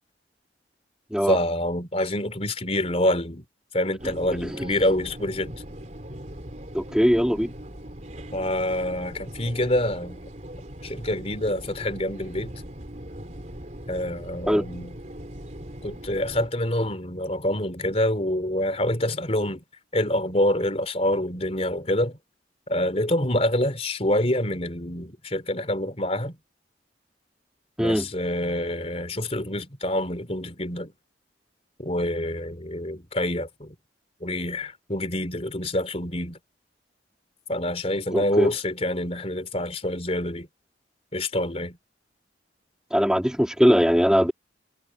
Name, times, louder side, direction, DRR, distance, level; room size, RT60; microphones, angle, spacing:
voice 1, 1.3-3.4 3.7-5.5 8.3-10.2 10.8-12.5 13.9-14.9 15.8-19.6 19.9-22.2 22.7-26.3 27.8-30.9 31.8-33.8 34.2-36.4 37.5-40.5 41.1-41.8, left 1 dB, 35° left, 3.7 m, -26 dB
sound 1, 4.0-16.5, equal, 40° right, 3.9 m, -40 dB
voice 2, 6.7-7.5 14.5-14.7 27.8-28.1 38.1-38.5 42.9-44.3, equal, 5° right, 2.6 m, -21 dB
head